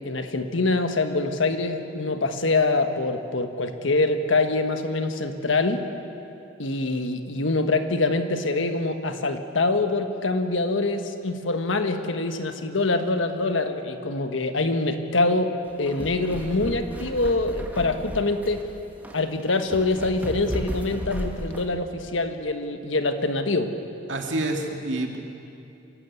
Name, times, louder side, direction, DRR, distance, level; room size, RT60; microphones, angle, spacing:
voice 1, 0.0-5.8 6.6-18.7 19.1-23.7, left 2 dB, 90° left, 7 dB, 1.4 m, -25 dB
sound 1, 15.7-21.7, equal, 10° right, 1.6 m, -35 dB
voice 2, 24.1-25.2, right 2 dB, 75° right, 2 dB, 2.3 m, -27 dB
26.5 x 12.5 x 8.2 m, 2.7 s
head